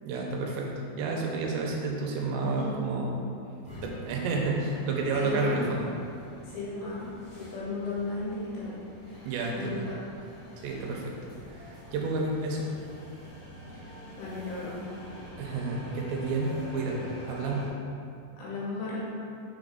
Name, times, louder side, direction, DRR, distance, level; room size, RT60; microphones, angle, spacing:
voice 1, 0.0-3.1 3.8-5.9 9.2-9.8 10.6-11.1 11.5-12.7 15.4-17.0 17.3-17.7, right 3 dB, 90° right, -1 dB, 2.9 m, -30 dB
voice 2, 2.4-2.7 5.1-5.6 6.4-7.1 7.4-8.8 9.5-10.0 14.2-14.8 18.4-19.1, left 3 dB, 70° left, -6 dB, 2.7 m, -35 dB
sound 1, 3.6-17.7, equal, 85° left, 1.1 m, -46 dB
6.1 x 5.1 x 3.9 m, 2.5 s
omnidirectional pair, 5.1 m